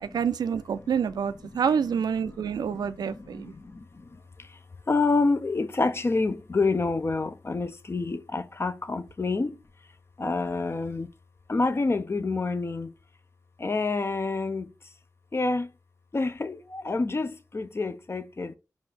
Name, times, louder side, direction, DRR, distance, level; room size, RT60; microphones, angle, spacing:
voice 1, 0.0-3.5, right 7 dB, 85° right, 0.3 m, -27 dB
voice 2, 4.9-9.5 10.2-11.1 11.5-12.9 13.6-14.6 15.3-15.7 16.1-18.6, left 3 dB, 40° left, 0.5 m, -27 dB
4.2 x 2.4 x 3.3 m
cardioid pair, 50°, 7 cm